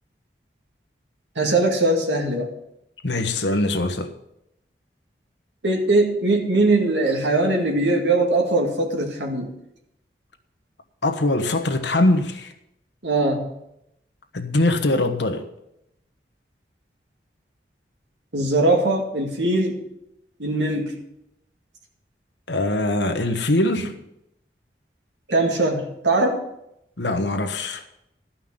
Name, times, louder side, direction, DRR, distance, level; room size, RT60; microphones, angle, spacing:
voice 1, 1.4-2.5 5.6-9.5 13.0-13.5 18.3-19.8 20.4-20.9 25.3-26.4, right 2 dB, 85° right, 2.1 m, -21 dB
voice 2, 3.0-4.1 11.0-12.5 14.3-15.5 22.5-23.9 27.0-27.8, left 2 dB, 85° left, 1.2 m, -22 dB
13.0 x 5.8 x 7.2 m
head